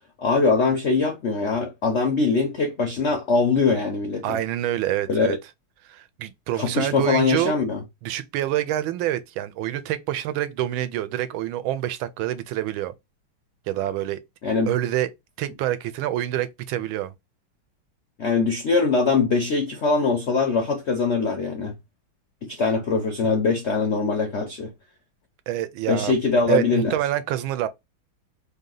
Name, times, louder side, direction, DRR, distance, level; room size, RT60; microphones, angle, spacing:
voice 1, 0.2-4.4 5.1-5.4 6.6-7.8 14.4-14.7 18.2-21.7 22.4-24.7 25.9-27.0, left 4 dB, 70° left, 0.6 m, -22 dB
voice 2, 4.2-5.4 5.9-7.5 8.0-12.9 13.7-14.2 14.7-15.1 15.4-17.1 25.5-26.2 26.5-27.7, right 13 dB, 80° right, 1.4 m, -26 dB
3.4 x 2.7 x 3.8 m
omnidirectional pair, 2.2 m